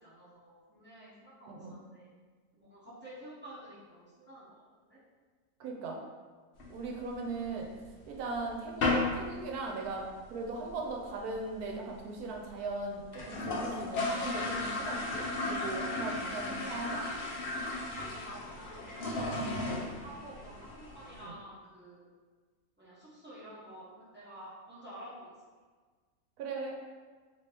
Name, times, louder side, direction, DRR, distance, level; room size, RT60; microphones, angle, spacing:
voice 1, 0.0-2.1 2.5-4.6 4.9-5.0 17.9-22.1 22.8-25.3, right 1 dB, 15° right, -9 dB, 0.4 m, -50 dB
voice 2, 5.6-6.0 6.7-7.7 8.1-17.0 19.7-19.8 21.2-21.4 26.4-26.8, right 3 dB, 80° right, 0 dB, 1.1 m, -39 dB
sound 1, 6.6-7.6 8.0-8.1 8.4-8.5 8.8-9.2 9.5-9.6 9.9-10.0 10.3-10.7 11.1-11.2 11.3-11.4 11.7-11.8 12.3-12.4 12.7-12.8 13.0-21.2, left 2 dB, 65° left, 0.5 m, -35 dB
3.0 x 2.7 x 3.3 m, 1.5 s
omnidirectional pair, 1.6 m